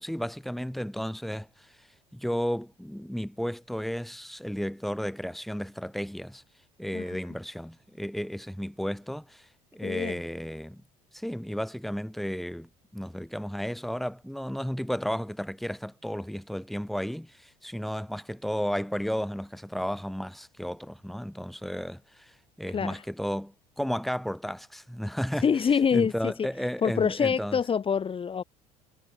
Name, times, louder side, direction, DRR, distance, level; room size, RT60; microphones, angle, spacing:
voice 1, 0.0-1.9 2.1-6.4 6.8-10.8 11.1-25.5 25.9-27.6, equal, ahead, 2.4 m, -33 dB
voice 2, 9.8-10.2 22.7-22.9 25.4-26.3 26.8-28.4, left 6 dB, 30° left, 1.5 m, -25 dB
hypercardioid pair, 70°, 18 cm